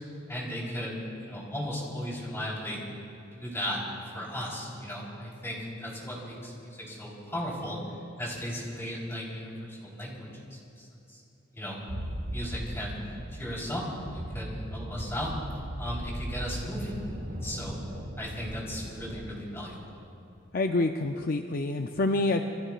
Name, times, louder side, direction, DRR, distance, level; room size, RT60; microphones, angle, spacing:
voice 1, 0.3-2.8 3.3-3.8 4.1-7.8 8.2-11.2 11.5-11.8 12.3-13.0 13.3-13.9 14.1-15.3 15.8-17.0 17.3-17.8 18.2-19.9, equal, 15° left, -4 dB, 3.8 m, -36 dB
sound 1, 11.9-19.2, equal, 75° right, 2.1 m, -38 dB
voice 2, 20.5-22.4, left 2 dB, 50° left, 5 dB, 0.5 m, -27 dB
26.5 x 20.5 x 2.5 m, 2.7 s
head